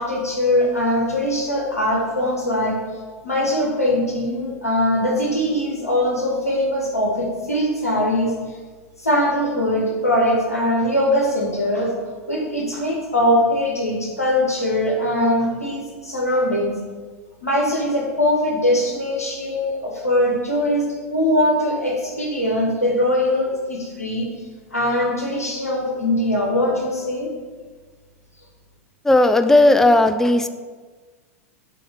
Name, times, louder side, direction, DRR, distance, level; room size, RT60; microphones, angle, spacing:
voice 1, 0.0-2.8 3.2-8.3 9.0-11.9 12.3-16.9 17.4-24.3 24.7-27.3, left 1 dB, 85° left, -1 dB, 1.6 m, -21 dB
voice 2, 29.0-30.5, left 2 dB, 5° left, 9 dB, 0.4 m, -15 dB
6.9 x 3.5 x 6.1 m, 1.4 s
figure-of-eight pair, 90°, 8 cm